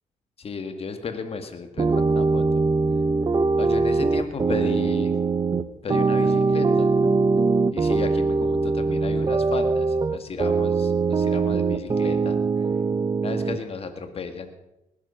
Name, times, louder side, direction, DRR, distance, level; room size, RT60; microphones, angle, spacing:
voice 1, 0.4-2.5 3.6-5.1 5.8-6.9 7.7-12.7 13.2-14.5, left 5 dB, 45° left, 7 dB, 2.0 m, -34 dB
sound 1, 1.8-13.6, right 4 dB, 30° right, 0.9 m, -22 dB
19.5 x 11.0 x 5.7 m, 0.88 s
cardioid pair, 80°, 14 cm